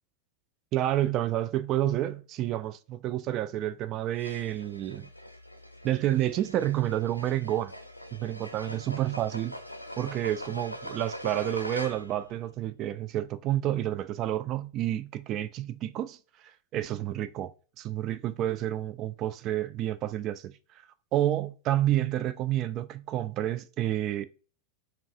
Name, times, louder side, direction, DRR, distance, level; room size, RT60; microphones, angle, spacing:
voice 1, 0.7-5.1 5.8-7.7 8.1-9.5 10.0-16.2 16.7-17.5 17.8-20.5 21.1-24.2, right 13 dB, 35° right, 0.3 m, -29 dB
sound 1, 4.2-12.3, equal, 85° left, 0.4 m, -42 dB
4.6 x 2.3 x 2.4 m
figure-of-eight pair, 90°, 0 cm